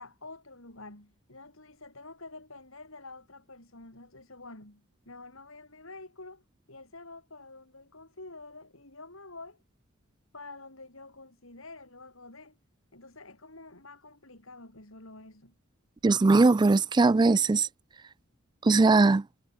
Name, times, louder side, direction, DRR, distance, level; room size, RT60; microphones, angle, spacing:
voice 1, 0.0-9.6 10.3-12.6 12.9-15.5, left 2 dB, 70° left, 7.1 m, -48 dB
voice 2, 16.0-17.7 18.6-19.2, right 3 dB, 20° right, 0.3 m, -20 dB
head